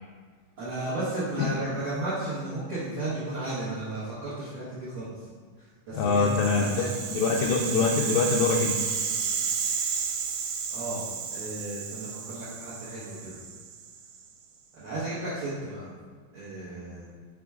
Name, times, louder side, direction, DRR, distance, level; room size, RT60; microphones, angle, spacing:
voice 1, 0.6-5.3 5.6-6.3 6.6-7.0 10.7-11.0 11.3-13.4 14.7-15.9 16.3-17.1, right 2 dB, 70° right, -11 dB, 1.2 m, -34 dB
voice 2, 5.9-6.8 7.1-8.7, left 4 dB, 80° left, -1 dB, 2.1 m, -24 dB
Rattle (instrument), 6.0-14.2, right 6 dB, 85° right, 2.5 m, -32 dB
6.1 x 4.5 x 3.5 m, 1.6 s
omnidirectional pair, 4.4 m